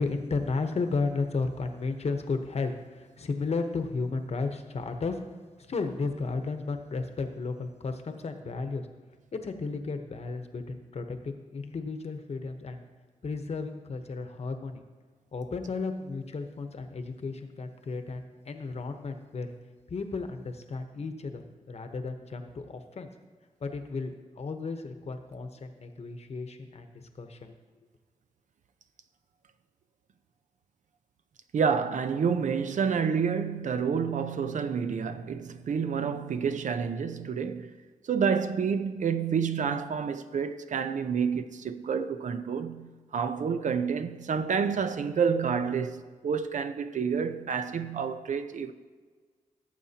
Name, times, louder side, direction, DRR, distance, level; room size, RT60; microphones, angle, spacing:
voice 1, 0.0-5.2 5.7-8.9 9.3-12.8 13.2-14.8 15.3-19.5 19.9-23.1 23.6-27.5, left 4 dB, 55° left, 1.0 m, -33 dB
voice 2, 31.5-37.7 38.0-48.7, right 6 dB, 70° right, 0.6 m, -29 dB
17.5 x 7.3 x 2.9 m
cardioid pair, 80°, 13 cm